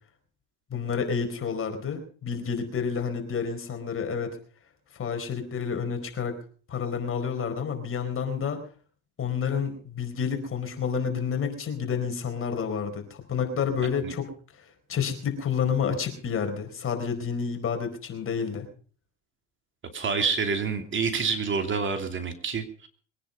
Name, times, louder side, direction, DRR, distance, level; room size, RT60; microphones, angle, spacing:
voice 1, 0.7-4.4 4.9-6.4 6.7-8.6 9.2-14.3 14.9-18.7, left 6 dB, 40° left, 6 dB, 4.4 m, -29 dB
voice 2, 19.9-22.9, right 5 dB, 35° right, 6 dB, 2.8 m, -28 dB
22.5 x 10.0 x 5.4 m, 0.43 s
supercardioid pair, 95°, 33 cm